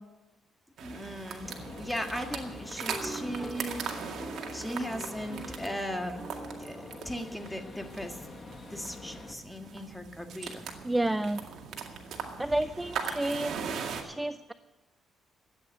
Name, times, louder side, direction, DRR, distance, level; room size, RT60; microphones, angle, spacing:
voice 1, 0.8-6.2 6.6-6.8 7.0-8.2 8.7-10.8, equal, 5° left, 5 dB, 1.8 m, -37 dB
sound 1, 0.8-14.0, right 6 dB, 70° right, 2.1 m, -40 dB
Gunshot gunfire, 1.4-9.3, left 3 dB, 35° left, 1.8 m, -46 dB
sound 2, 2.9-8.4, right 2 dB, 25° right, 1.7 m, -45 dB
voice 2, 10.8-11.4 12.4-13.6 14.0-14.5, right 1 dB, 10° right, 13 dB, 0.5 m, -30 dB
13.0 x 9.2 x 8.9 m, 1.1 s
cardioid pair, 90°, 0 cm